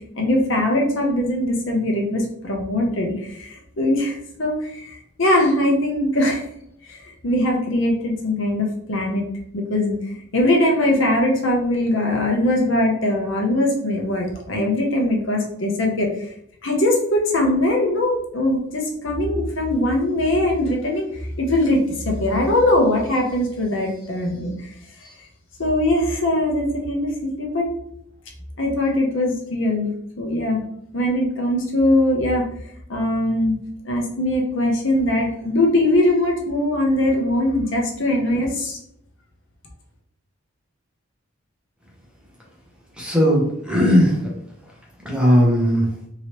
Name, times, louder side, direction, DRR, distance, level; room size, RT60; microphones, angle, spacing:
voice 1, 0.1-6.4 6.9-7.0 7.2-9.2 9.5-10.0 10.3-16.3 16.6-21.1 21.4-21.8 22.0-24.7 25.0-25.1 25.6-27.7 28.6-29.9 30.2-30.6 30.9-32.4 32.9-33.6 33.8-38.8, left 1 dB, 60° left, 0 dB, 0.7 m, -21 dB
voice 2, 43.0-44.2 45.0-45.9, equal, 5° right, -3 dB, 0.7 m, -17 dB
3.1 x 2.8 x 2.9 m, 0.73 s
head